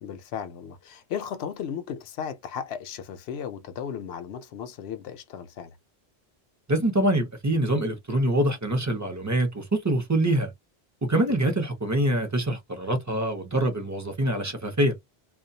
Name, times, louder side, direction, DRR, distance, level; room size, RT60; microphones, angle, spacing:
voice 1, 0.0-5.8, left 8 dB, 80° left, 0.8 m, -35 dB
voice 2, 6.7-10.5 11.0-14.9, right 1 dB, 20° right, 0.6 m, -25 dB
2.2 x 2.2 x 2.6 m
omnidirectional pair, 1.1 m